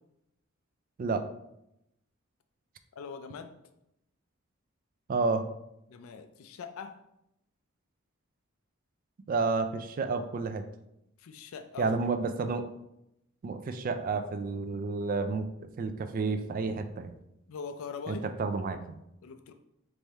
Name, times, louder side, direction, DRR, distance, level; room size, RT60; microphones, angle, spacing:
voice 1, 3.0-3.5 5.9-7.0 11.2-12.0 17.5-18.3 19.2-19.5, left 6 dB, 80° left, 8 dB, 0.4 m, -41 dB
voice 2, 5.1-5.4 9.3-10.6 11.8-12.7 13.4-17.1 18.1-18.8, right 4 dB, 40° right, 10 dB, 0.3 m, -30 dB
3.4 x 3.4 x 4.1 m, 0.83 s
head